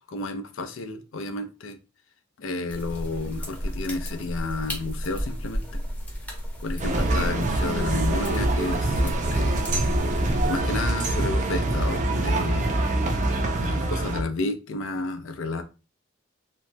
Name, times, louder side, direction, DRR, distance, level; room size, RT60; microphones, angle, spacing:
voice 1, 0.1-1.8 2.4-5.8 6.6-9.6 10.4-12.7 13.6-15.6, left 3 dB, 90° left, 0.5 m, -31 dB
sound 1, 2.7-10.6, equal, 5° left, 0.6 m, -32 dB
sound 2, 6.8-14.2, right 2 dB, 40° right, 0.4 m, -25 dB
3.0 x 2.2 x 2.5 m
head